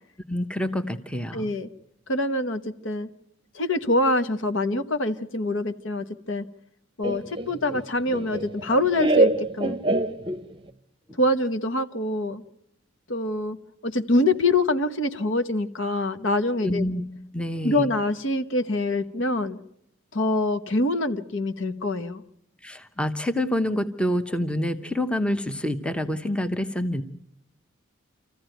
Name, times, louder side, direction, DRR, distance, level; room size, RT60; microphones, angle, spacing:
voice 1, 0.3-1.5 16.6-17.0 17.3-17.9 22.6-27.0, left 1 dB, 5° left, 9 dB, 0.8 m, -27 dB
voice 2, 1.3-1.7 2.1-3.1 3.5-6.4 7.0-9.8 11.2-12.4 13.1-13.6 13.8-16.8 17.6-19.6 20.1-22.2, left 2 dB, 65° left, 10 dB, 1.1 m, -25 dB
Laughter, 7.0-10.7, right 1 dB, 25° right, 0.8 m, -24 dB
27.0 x 15.0 x 9.1 m, 0.79 s
head